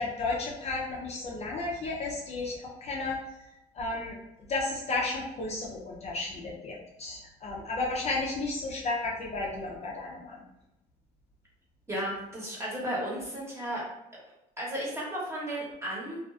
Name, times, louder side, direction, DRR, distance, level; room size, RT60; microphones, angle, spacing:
voice 1, 0.0-3.2 3.8-4.2 4.5-10.4, left 3 dB, 40° left, -2 dB, 0.5 m, -33 dB
voice 2, 11.9-13.8 14.6-16.2, right 1 dB, 15° right, -5 dB, 0.9 m, -34 dB
2.4 x 2.3 x 2.3 m, 0.86 s
cardioid pair, 110°, 17 cm